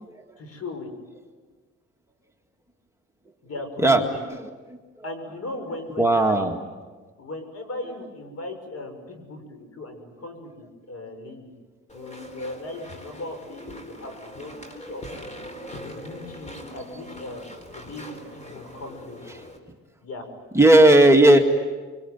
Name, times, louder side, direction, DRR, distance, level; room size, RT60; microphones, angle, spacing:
voice 1, 0.4-0.9 3.4-4.2 5.0-6.5 7.2-11.5 11.9-15.3 15.8-17.4 17.7-19.2 20.0-20.3, left 2 dB, 55° left, 6 dB, 6.4 m, -38 dB
voice 2, 4.4-5.1 6.0-6.5 20.5-21.4, right 1 dB, 10° right, 2 dB, 2.0 m, -16 dB
Walk footsteps / Chatter / Squeak, 11.9-19.6, equal, 25° left, 4.3 m, -41 dB
25.5 x 24.0 x 9.4 m, 1.4 s
cardioid pair, 90°, 30 cm